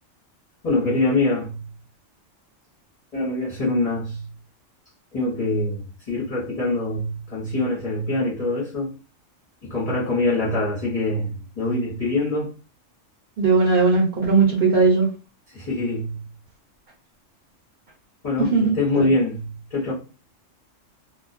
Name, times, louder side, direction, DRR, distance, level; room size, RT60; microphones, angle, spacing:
voice 1, 0.6-1.6 3.1-4.3 5.1-8.9 9.6-12.5 15.5-16.2 18.2-19.9, left 2 dB, 35° left, 0.7 m, -24 dB
voice 2, 13.4-15.0 18.4-18.7 19.0-19.1, right 4 dB, 50° right, 0.8 m, -18 dB
2.3 x 2.1 x 2.5 m
omnidirectional pair, 1.3 m